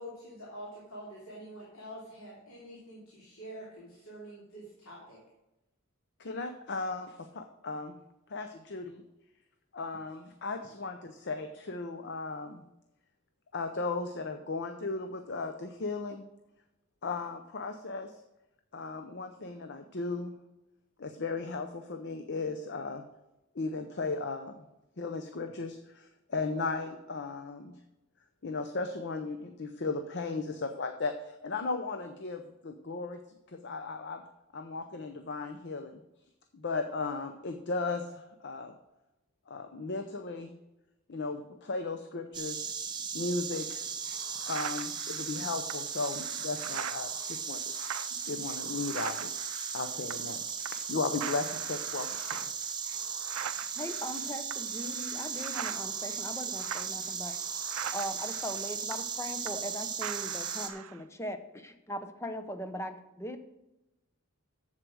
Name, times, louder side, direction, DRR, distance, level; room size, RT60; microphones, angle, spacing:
voice 1, 0.0-5.2, equal, 85° left, -6 dB, 2.9 m, -46 dB
voice 2, 6.2-7.9 8.3-9.0 9.7-12.6 13.5-16.2 17.0-18.2 18.7-20.4 21.0-23.0 23.5-24.7 25.0-27.8 28.4-33.2 33.5-34.2 34.5-36.0 36.5-38.7 39.5-40.5 41.1-42.7 43.1-43.9 44.5-47.8 48.1-49.4 49.7-52.5, left 3 dB, 55° left, 7 dB, 0.7 m, -36 dB
Insect, 42.3-60.7, right 6 dB, 20° right, 1.0 m, -37 dB
sound 1, 43.5-43.6 44.1-50.4 50.6-50.9 51.2-59.7 60.0-61.0, right 9 dB, 85° right, 0.4 m, -43 dB
voice 3, 53.8-57.6 57.9-63.4, equal, 15° left, 9 dB, 0.7 m, -40 dB
7.9 x 7.6 x 6.2 m, 0.95 s
head